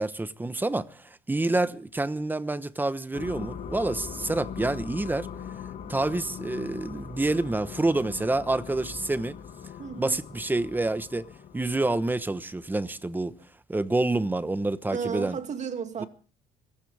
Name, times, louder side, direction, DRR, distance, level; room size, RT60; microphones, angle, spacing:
voice 1, 0.0-5.3 5.9-9.4 10.0-11.3 11.5-13.3 13.7-15.4, right 2 dB, 10° right, 1.0 m, -28 dB
sound 1, 3.1-12.9, left 7 dB, 50° left, 2.3 m, -41 dB
voice 2, 9.8-10.2 14.9-16.1, right 7 dB, 45° right, 2.4 m, -33 dB
27.0 x 15.5 x 3.4 m
cardioid pair, 110°, 17 cm